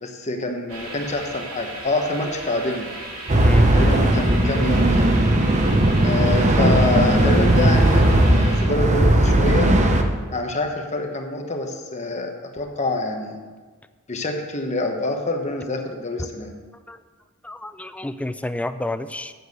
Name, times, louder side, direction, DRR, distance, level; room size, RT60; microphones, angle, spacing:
voice 1, 0.0-2.9 3.7-5.1 6.0-9.7 10.3-13.4 14.1-16.5, left 2 dB, 35° left, 3 dB, 1.1 m, -26 dB
sound 1, 0.7-8.6, equal, 75° right, 2.6 m, -31 dB
sound 2, 3.3-10.0, right 1 dB, 35° right, 0.9 m, -17 dB
voice 2, 17.4-19.3, left 1 dB, 5° left, 11 dB, 0.3 m, -30 dB
8.0 x 7.0 x 7.9 m, 1.4 s
head